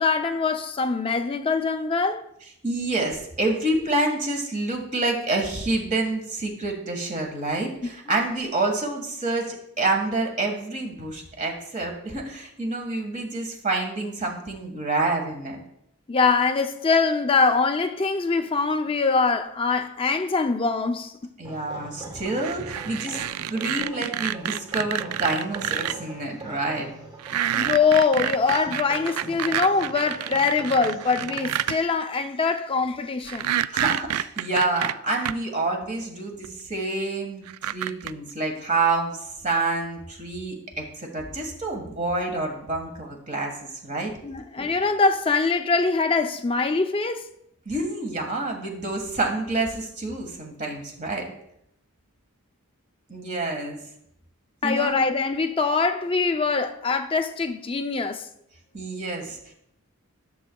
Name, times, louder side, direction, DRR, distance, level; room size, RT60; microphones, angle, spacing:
voice 1, 0.0-2.2 16.1-21.1 27.5-33.5 44.2-47.2 54.6-58.3, left 4 dB, 25° left, 0.5 m, -23 dB
voice 2, 2.6-15.6 21.4-26.9 33.7-44.1 47.6-51.2 53.1-53.8 54.6-55.0 58.7-59.5, right 2 dB, 35° right, 1.5 m, -28 dB
sound 1, 21.4-31.8, right 2 dB, 20° right, 1.2 m, -42 dB
sound 2, 22.4-25.9 27.2-31.8 33.3-35.3 36.4-36.5 37.5-38.1, right 11 dB, 85° right, 0.3 m, -28 dB
13.5 x 7.0 x 2.3 m
head